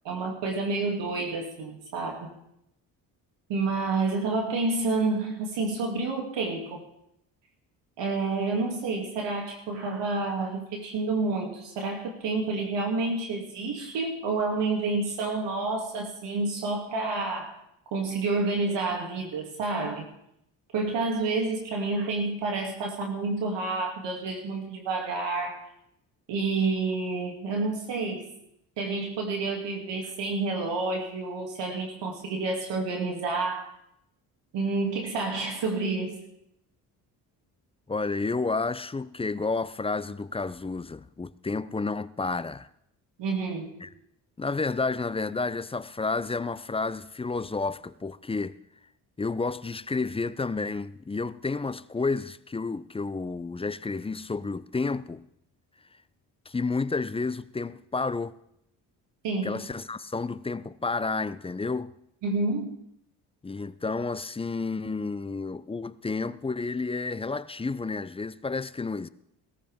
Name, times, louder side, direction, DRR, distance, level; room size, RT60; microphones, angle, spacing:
voice 1, 0.0-2.3 3.5-6.8 8.0-17.6 17.9-20.0 20.7-25.6 26.3-28.3 28.8-33.7 34.5-36.2 43.2-43.8 59.2-59.6 62.2-62.7, right 3 dB, 70° right, 2.7 m, -29 dB
voice 2, 37.9-42.7 43.8-43.9 44.4-48.6 49.2-55.2 56.5-58.4 59.4-61.9 63.4-69.1, left 3 dB, 15° left, 0.5 m, -31 dB
18.5 x 14.0 x 3.6 m
supercardioid pair, 70°, 45 cm